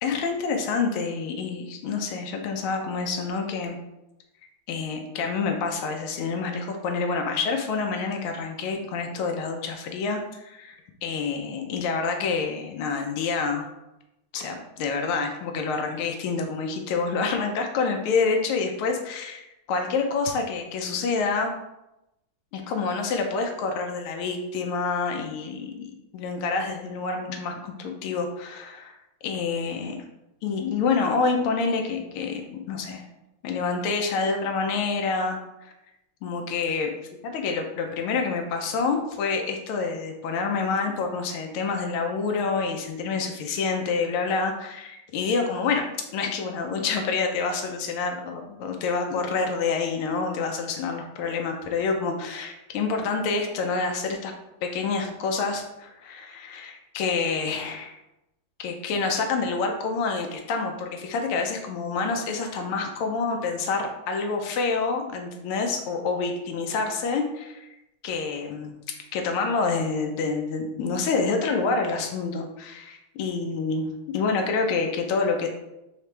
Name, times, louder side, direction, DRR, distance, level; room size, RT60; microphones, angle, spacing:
voice 1, 0.0-3.8 4.7-13.7 14.3-21.5 22.5-28.9 29.2-29.9 30.4-32.4 32.7-33.0 33.4-35.7 36.2-36.9 37.2-54.3 54.6-58.0 58.6-67.6 68.0-68.7 69.1-75.5, left 4 dB, 80° left, 3 dB, 1.5 m, -27 dB
4.8 x 2.9 x 3.2 m, 0.91 s
omnidirectional pair, 2.3 m